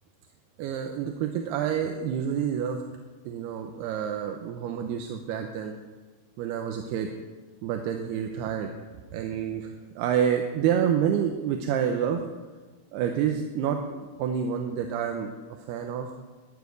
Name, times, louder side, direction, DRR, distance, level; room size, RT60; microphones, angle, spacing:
voice 1, 0.6-2.8 3.3-5.8 6.4-7.1 7.6-8.7 9.1-12.2 12.9-16.1, right 8 dB, 80° right, 4 dB, 2.7 m, -28 dB
13.5 x 7.2 x 9.4 m, 1.3 s
omnidirectional pair, 5.0 m